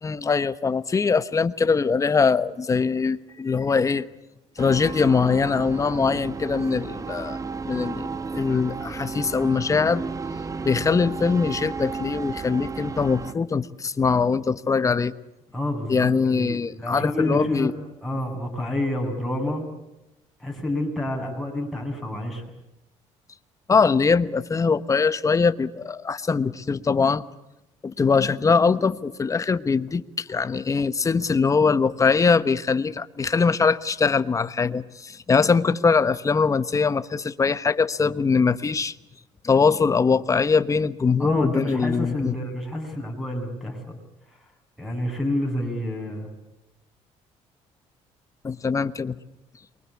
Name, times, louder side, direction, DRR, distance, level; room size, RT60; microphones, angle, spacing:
voice 1, 0.0-4.1 4.6-7.4 7.6-10.0 10.6-15.1 15.9-17.7 23.7-27.2 27.8-38.9 39.4-42.3 48.4-49.2, left 5 dB, 25° left, 13 dB, 1.2 m, -22 dB
sound 1, 4.6-13.3, right 4 dB, 25° right, 1.2 m, -33 dB
voice 2, 15.5-17.7 18.0-19.7 20.4-22.4 41.2-44.0 44.8-46.3, left 1 dB, ahead, 4 dB, 7.7 m, -28 dB
28.5 x 23.5 x 8.4 m, 0.92 s
cardioid pair, 110°, 13 cm